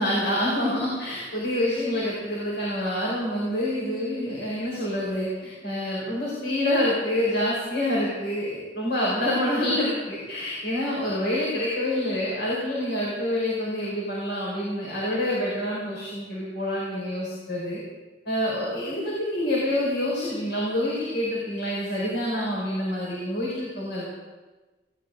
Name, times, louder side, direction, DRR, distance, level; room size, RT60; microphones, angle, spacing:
voice 1, 0.0-17.8 18.3-24.1, left 1 dB, 70° left, -5 dB, 5.3 m, -27 dB
19.0 x 18.0 x 4.0 m, 1.2 s
head